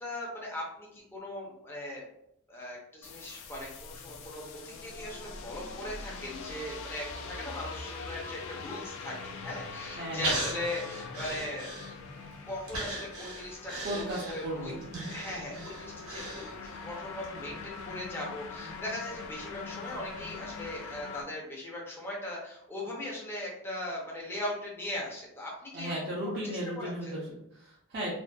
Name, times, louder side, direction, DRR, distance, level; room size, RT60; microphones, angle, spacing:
voice 1, 0.0-2.0 2.5-11.7 12.4-14.8 15.1-25.9 26.2-27.1, left 1 dB, 10° left, -4 dB, 0.5 m, -39 dB
sound 1, 3.0-21.2, left 4 dB, 60° left, 0.3 m, -43 dB
voice 2, 10.0-10.3 13.8-14.8 25.7-28.1, right 1 dB, 45° right, -7 dB, 0.5 m, -35 dB
Breathing, 10.2-12.2 12.7-16.9 17.2-17.3, right 2 dB, 70° right, 0.8 m, -37 dB
2.5 x 2.2 x 2.2 m, 0.78 s
head